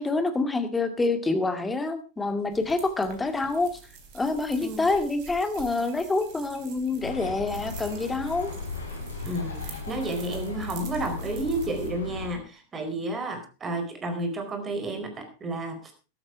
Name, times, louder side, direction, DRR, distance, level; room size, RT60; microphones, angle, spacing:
voice 1, 0.0-3.8 4.1-8.5, left 3 dB, 10° left, 8 dB, 2.1 m, -27 dB
sound 1, 2.5-11.9, right 6 dB, 45° right, 3.9 m, -47 dB
Bird, 7.0-12.4, left 4 dB, 70° left, 3.8 m, -36 dB
voice 2, 9.2-15.9, right 2 dB, 20° right, 6 dB, 4.3 m, -31 dB
14.0 x 12.0 x 4.7 m, 0.33 s
figure-of-eight pair, 90°, 0 cm